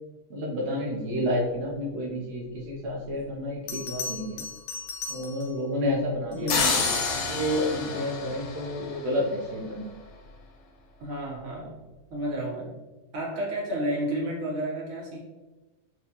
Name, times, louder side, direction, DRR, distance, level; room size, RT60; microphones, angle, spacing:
voice 1, 0.3-4.4 5.1-9.9, left 1 dB, 55° right, -2 dB, 0.9 m, -30 dB
Bell, 3.1-3.2 3.7-5.6 6.3-7.4 10.1-10.3, left 4 dB, 90° left, 1.1 m, -37 dB
voice 2, 6.3-6.7 11.0-11.8 12.1-12.7 13.1-15.2, right 1 dB, 90° right, -4 dB, 1.5 m, -31 dB
sound 1, 6.5-9.4, left 4 dB, 70° left, 0.8 m, -29 dB
4.3 x 2.3 x 2.7 m, 1.2 s
omnidirectional pair, 1.4 m